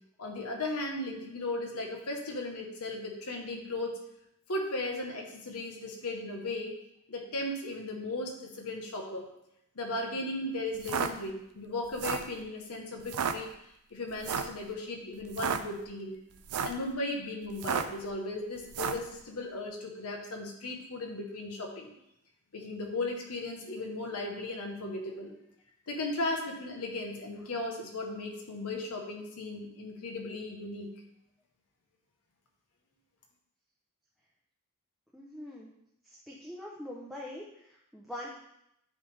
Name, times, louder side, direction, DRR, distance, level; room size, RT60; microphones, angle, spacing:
voice 1, 0.2-4.0 4.5-6.8 7.1-9.3 9.7-13.5 13.9-16.2 16.6-21.9 22.5-25.3 25.9-30.9, left 2 dB, 85° left, 1 dB, 1.1 m, -36 dB
sound 1, 10.7-11.1 11.9-12.3 13.0-13.3 14.2-14.6 15.2-15.6 16.4-16.8 17.5-18.0 18.7-19.1, right 6 dB, 85° right, 0.4 m, -32 dB
voice 2, 35.1-35.7 36.3-37.4 37.9-38.3, left 1 dB, ahead, -4 dB, 0.6 m, -42 dB
9.8 x 3.4 x 3.3 m, 0.78 s
head